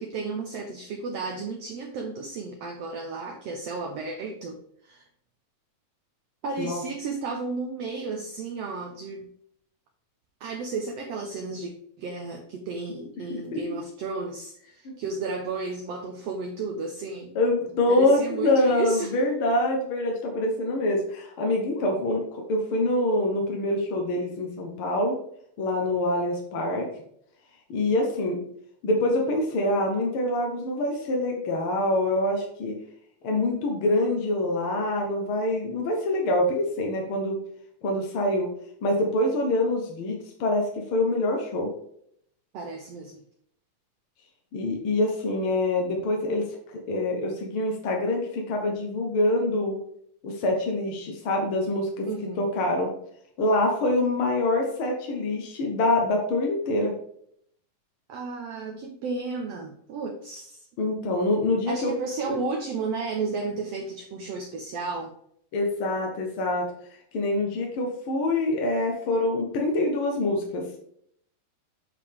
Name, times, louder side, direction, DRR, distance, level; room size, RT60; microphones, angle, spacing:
voice 1, 0.0-5.0 6.4-9.3 10.4-11.7 12.0-17.4 17.9-19.1 42.5-43.2 52.1-52.5 58.1-60.7 61.7-65.1, right 4 dB, 80° right, 2 dB, 1.4 m, -33 dB
voice 2, 17.3-25.1 25.6-26.9 27.7-28.4 28.8-32.7 33.2-37.4 37.8-38.5 38.8-41.7 44.5-46.5 46.9-49.8 50.2-52.1 52.4-52.9 53.4-56.9 60.8-61.9 62.3-62.4 65.5-70.6, left 1 dB, 60° left, 1 dB, 1.4 m, -25 dB
8.9 x 4.9 x 3.6 m, 0.68 s
omnidirectional pair, 3.9 m